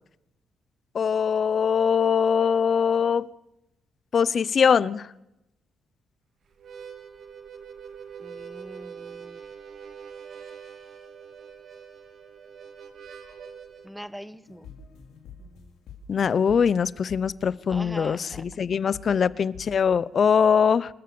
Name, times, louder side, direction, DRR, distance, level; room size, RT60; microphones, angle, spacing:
voice 1, 0.9-3.2 4.1-5.0 16.1-20.9, left 7 dB, 55° left, 21 dB, 0.8 m, -22 dB
Harmonica, 6.5-13.9, right 7 dB, 65° right, 3.0 m, -43 dB
voice 2, 8.2-9.4 13.8-14.7 17.7-18.4, equal, ahead, 16 dB, 1.4 m, -41 dB
sound 1, 14.4-16.2 16.5-16.8 17.1-17.4 17.7-18.0 18.3-18.7 18.9-19.3 19.5-19.8, left 5 dB, 85° left, 4.4 m, -46 dB
27.5 x 13.5 x 7.1 m, 0.87 s
cardioid pair, 65°, 0 cm